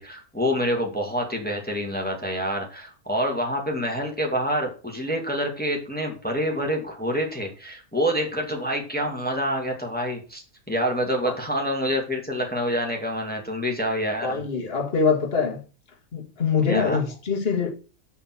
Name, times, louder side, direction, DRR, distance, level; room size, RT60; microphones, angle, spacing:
voice 1, 0.0-14.4 16.7-17.0, equal, 5° left, 2.4 m, -27 dB
voice 2, 14.2-15.6 16.1-17.7, left 5 dB, 40° left, 2.3 m, -24 dB
8.3 x 7.2 x 6.2 m
omnidirectional pair, 1.5 m